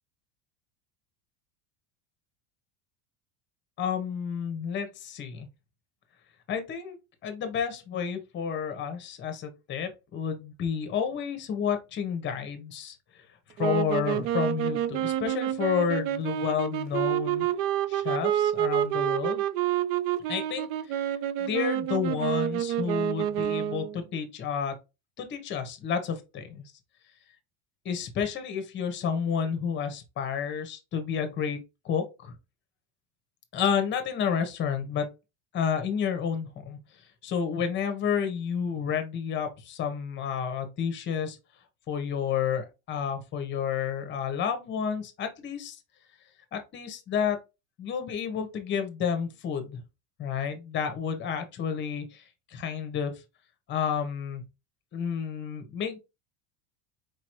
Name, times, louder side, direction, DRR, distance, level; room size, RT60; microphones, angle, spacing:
voice 1, 3.8-5.5 6.5-7.0 7.2-13.0 13.6-17.5 17.9-19.4 20.3-21.1 21.4-24.7 25.2-26.6 27.8-31.6 31.8-32.3 33.5-35.1 35.5-36.8 37.2-41.4 41.9-45.8 46.5-47.4 47.8-49.8 50.2-53.1 53.7-54.4 54.9-56.0, left 7 dB, 30° left, 1.0 m, -30 dB
sound 1, 13.6-24.0, right 11 dB, 60° right, 0.5 m, -28 dB
4.8 x 3.0 x 3.0 m
cardioid pair, 150°, 36 cm